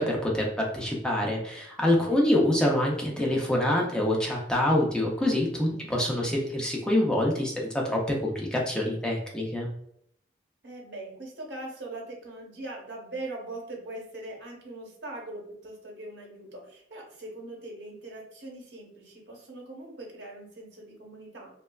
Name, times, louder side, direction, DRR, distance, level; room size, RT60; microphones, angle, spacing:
voice 1, 0.0-9.7, left 1 dB, 5° left, -2 dB, 0.4 m, -26 dB
voice 2, 2.0-2.4 5.6-5.9 10.6-21.5, right 2 dB, 85° right, -1 dB, 0.9 m, -41 dB
3.2 x 2.2 x 2.2 m, 0.71 s
head